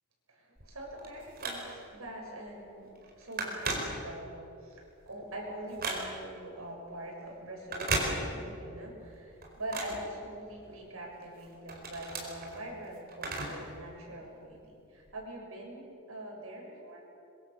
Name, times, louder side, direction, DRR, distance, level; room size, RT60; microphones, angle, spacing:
voice 1, 0.3-17.0, right 1 dB, 80° right, -1 dB, 7.0 m, -43 dB
Telephone, 0.6-2.0 2.5-2.7 3.0-4.5 4.9-6.4 7.6-8.7 9.0-10.8 11.2-13.7 14.0-14.1 15.0-15.1, right 3 dB, 45° right, 4.7 m, -36 dB
25.5 x 23.5 x 7.1 m, 2.7 s
head